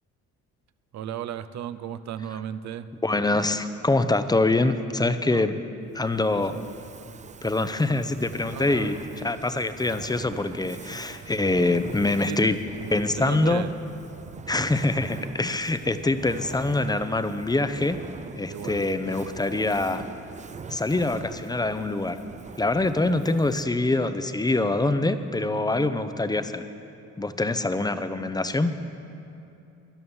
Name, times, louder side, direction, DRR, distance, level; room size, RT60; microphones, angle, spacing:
voice 1, 0.9-2.9 5.3-5.5 6.3-6.6 8.4-9.0 12.3-12.6 13.2-13.7 18.5-18.9, right 10 dB, 65° right, 12 dB, 0.7 m, -35 dB
voice 2, 3.0-5.5 5.9-6.5 7.4-12.6 12.9-13.6 14.5-18.0 18.4-20.0 20.7-22.2 22.6-26.7 27.2-28.7, left 2 dB, 15° left, 11 dB, 0.7 m, -24 dB
Fire, 5.9-23.8, right 6 dB, 25° right, 0.4 m, -42 dB
13.0 x 11.0 x 7.2 m, 2.8 s
cardioid pair, 90°, 30 cm